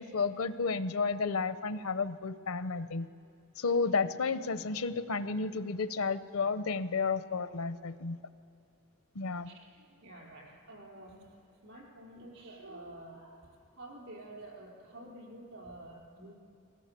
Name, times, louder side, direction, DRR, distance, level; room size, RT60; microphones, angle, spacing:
voice 1, 0.0-3.1 3.6-8.2 9.1-9.5, left 4 dB, 80° left, 13 dB, 0.7 m, -32 dB
voice 2, 9.5-11.3 11.6-13.4 13.8-16.4, right 1 dB, 60° right, -2 dB, 4.8 m, -49 dB
19.5 x 17.0 x 8.2 m, 2.8 s
head